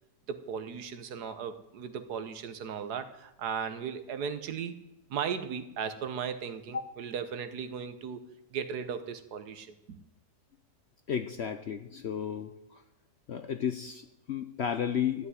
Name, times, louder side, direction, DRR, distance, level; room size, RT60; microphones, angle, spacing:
voice 1, 0.3-4.8 5.1-10.0, right 7 dB, 75° right, 10 dB, 1.5 m, -37 dB
voice 2, 11.1-12.8 13.3-15.3, left 8 dB, 60° left, 8 dB, 0.7 m, -33 dB
14.0 x 5.9 x 9.5 m, 0.88 s
omnidirectional pair, 1.7 m